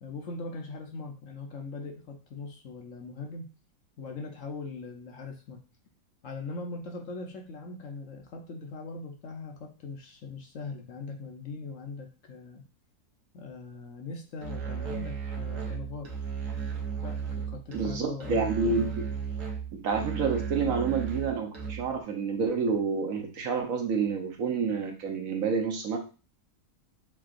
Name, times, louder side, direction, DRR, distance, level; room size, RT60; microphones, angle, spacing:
voice 1, 0.0-3.4 4.0-5.6 6.2-12.6 13.3-16.1 17.0-18.4, left 3 dB, 60° left, 2 dB, 1.0 m, -40 dB
Musical instrument, 14.4-22.0, right 6 dB, 80° right, 1.6 m, -35 dB
voice 2, 17.7-19.0 19.7-26.0, right 5 dB, 65° right, 3 dB, 1.1 m, -29 dB
7.3 x 2.8 x 2.5 m, 0.35 s
omnidirectional pair, 1.7 m